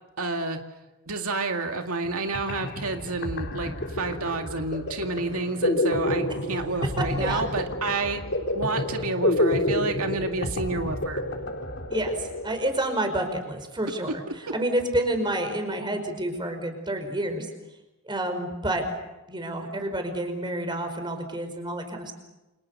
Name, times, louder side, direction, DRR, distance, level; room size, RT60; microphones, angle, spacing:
voice 1, 0.2-0.6 1.1-8.2 8.5-11.3, right 3 dB, 85° right, 4 dB, 2.3 m, -29 dB
sound 1, 2.0-2.1 2.3-12.9, left 1 dB, 55° left, 3.8 m, -29 dB
voice 2, 7.0-7.4 11.9-17.5 18.0-18.8 19.3-22.1, right 1 dB, 20° right, 6 dB, 5.2 m, -29 dB
29.5 x 27.0 x 6.8 m, 1.0 s
head